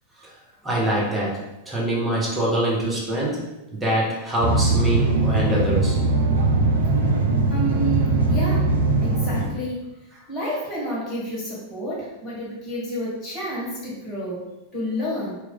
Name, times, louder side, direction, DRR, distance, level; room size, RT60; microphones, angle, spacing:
voice 1, 0.6-3.4 3.7-6.0, right 1 dB, 10° right, -5 dB, 0.9 m, -24 dB
sound 1, 4.4-9.4, right 2 dB, 65° right, 0.5 m, -20 dB
voice 2, 7.5-8.7 9.0-9.8 10.3-14.4 14.7-15.4, equal, 25° left, -6 dB, 1.4 m, -30 dB
2.9 x 2.4 x 3.3 m, 0.98 s
figure-of-eight pair, 90°, 0 cm